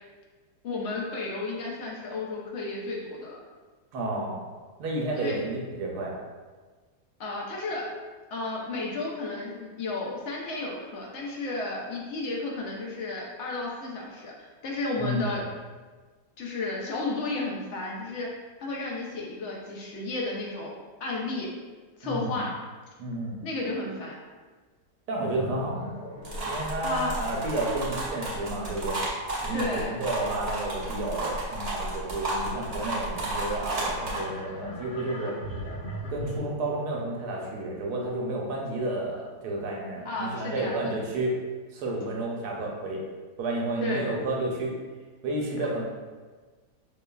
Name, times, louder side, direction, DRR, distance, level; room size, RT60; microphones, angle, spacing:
voice 1, 0.6-3.4 5.2-5.4 7.2-7.9 8.3-15.4 16.4-18.3 18.6-20.7 21.0-21.5 22.0-22.5 23.4-24.2 26.8-27.1 29.5-29.9 40.0-41.0 43.8-44.1 45.6-45.7, left 2 dB, 65° left, -2 dB, 0.7 m, -33 dB
voice 2, 3.9-4.4 4.8-6.2 15.0-15.5 22.0-22.4 23.0-23.4 25.1-25.9 26.4-29.0 29.4-35.4 36.1-41.3 41.7-43.0 43.4-44.7 45.2-45.8, right 2 dB, 70° right, -1 dB, 1.2 m, -31 dB
sound 1, 25.3-31.3 31.7-36.4, equal, 85° left, 1.9 m, -41 dB
sound 2, 26.2-34.2, right 1 dB, 40° right, 0.5 m, -32 dB
5.0 x 2.3 x 2.2 m, 1.4 s
omnidirectional pair, 1.8 m